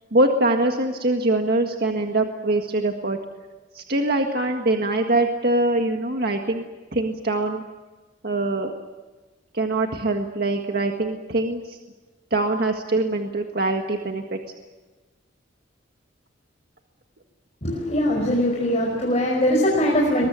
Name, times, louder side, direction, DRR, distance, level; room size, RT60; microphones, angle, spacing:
voice 1, 0.1-3.2 3.7-6.6 6.9-7.6 8.2-8.8 9.5-11.8 12.3-14.4, right 2 dB, 55° right, 3 dB, 1.8 m, -23 dB
voice 2, 17.6-20.3, equal, 35° left, -3 dB, 5.4 m, -21 dB
23.5 x 21.5 x 8.9 m, 1.2 s
head